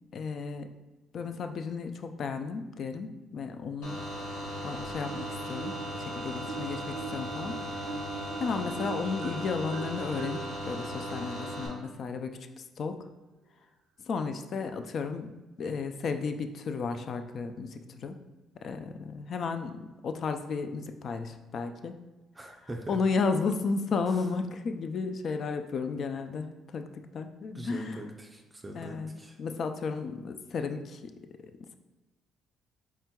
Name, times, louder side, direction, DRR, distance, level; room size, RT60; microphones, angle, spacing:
voice 1, 0.1-0.7 1.1-4.0 4.6-7.6 8.4-13.0 14.1-18.2 18.6-22.1 22.9-28.0 28.7-29.1 29.4-31.1 31.4-31.8, left 4 dB, 55° left, 8 dB, 0.3 m, -33 dB
sound 1, 3.8-11.7, equal, 85° left, 1.5 m, -37 dB
Marimba xylophone, 5.1-6.0 6.5-12.0, right 8 dB, 85° right, 0.4 m, -43 dB
voice 2, 22.4-23.0 27.5-29.4, right 1 dB, 20° right, 2 dB, 0.4 m, -42 dB
4.3 x 3.6 x 2.2 m, 1.1 s
supercardioid pair, 80°, 0 cm